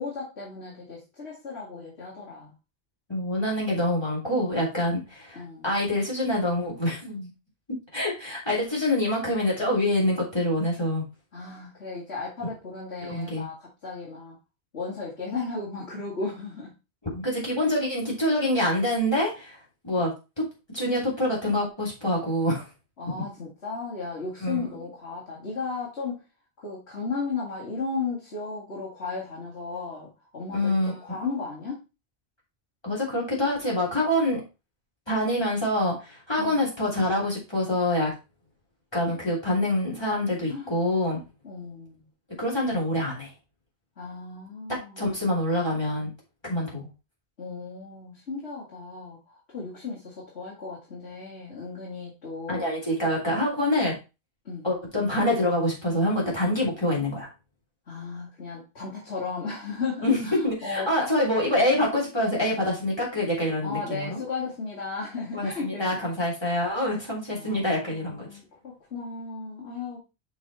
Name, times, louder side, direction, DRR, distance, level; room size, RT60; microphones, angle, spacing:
voice 1, 0.0-2.5 5.4-5.7 11.3-14.4 14.7-16.7 20.0-20.1 23.0-26.2 26.6-31.8 36.4-36.7 40.5-40.7 41.4-42.0 44.0-45.2 47.4-49.2 49.5-52.7 54.4-54.7 57.9-61.1 63.6-66.0 67.3-70.0, left 4 dB, 90° left, -6 dB, 2.5 m, -35 dB
voice 2, 3.1-7.3 7.9-11.0 13.0-13.5 17.1-20.5 20.7-22.7 24.4-24.7 30.5-30.9 32.8-34.4 35.1-38.1 38.9-41.2 42.4-43.3 44.7-46.1 46.4-46.8 52.5-54.0 54.6-57.3 60.0-64.2 65.3-68.3, left 1 dB, 25° left, -5 dB, 3.2 m, -26 dB
6.2 x 4.9 x 4.1 m, 0.28 s
omnidirectional pair, 1.1 m